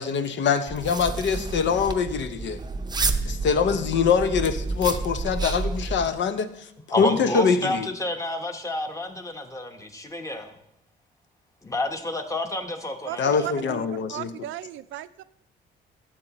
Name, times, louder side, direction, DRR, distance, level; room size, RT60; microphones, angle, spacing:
voice 1, 0.0-2.6 3.2-6.5 7.0-7.9 13.2-14.3, left 6 dB, 65° left, 9 dB, 0.7 m, -24 dB
sound 1, 0.7-6.1, right 3 dB, 20° right, 0.6 m, -30 dB
voice 2, 6.9-10.6 11.6-13.5, left 1 dB, 15° left, 5 dB, 1.1 m, -30 dB
voice 3, 13.1-15.2, right 14 dB, 80° right, 13 dB, 0.4 m, -36 dB
12.0 x 7.6 x 3.0 m, 0.79 s
cardioid pair, 90°, 20 cm